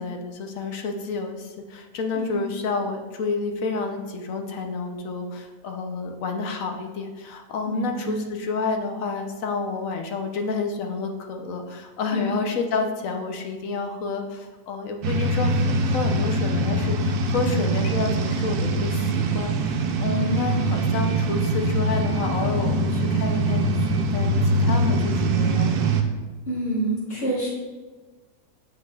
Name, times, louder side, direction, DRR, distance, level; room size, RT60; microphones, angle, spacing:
voice 1, 0.0-26.0, left 4 dB, 65° left, 4 dB, 1.1 m, -30 dB
voice 2, 7.7-8.2 12.1-12.3 17.4-17.6 20.1-20.5 24.6-24.9 26.4-27.5, right 1 dB, 85° left, -10 dB, 2.8 m, -28 dB
sound 1, 15.0-26.0, right 2 dB, 90° right, 1.2 m, -23 dB
7.4 x 7.3 x 2.3 m, 1.3 s
omnidirectional pair, 1.6 m